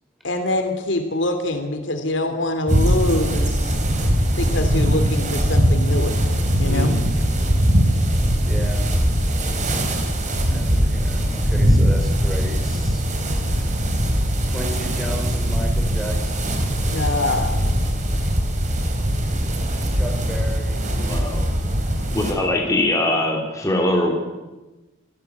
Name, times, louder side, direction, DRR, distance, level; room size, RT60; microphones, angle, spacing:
voice 1, 0.2-3.8 4.3-6.1 6.6-6.9 16.9-17.8, left 1 dB, 70° left, 7 dB, 2.9 m, -24 dB
sound 1, 2.7-22.3, equal, 40° right, 4.0 m, -21 dB
voice 2, 6.6-7.0 8.4-8.9 10.3-13.1 14.5-16.6 19.9-20.9, equal, ahead, 0 dB, 5.2 m, -33 dB
voice 3, 20.9-21.5 22.1-24.1, left 1 dB, 15° left, 0 dB, 3.3 m, -22 dB
27.0 x 16.0 x 8.4 m, 1.1 s
head